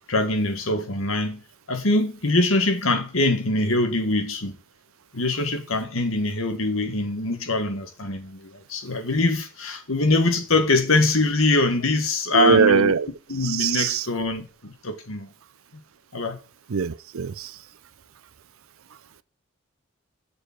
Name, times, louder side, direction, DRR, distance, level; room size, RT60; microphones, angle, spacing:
voice 1, 0.1-1.4 1.7-4.5 5.1-12.9 13.3-15.3 16.1-16.4, left 2 dB, 85° left, 1.8 m, -23 dB
voice 2, 12.3-13.1 13.4-14.1 16.7-17.5, right 6 dB, 90° right, 0.5 m, -21 dB
7.1 x 6.6 x 5.9 m
head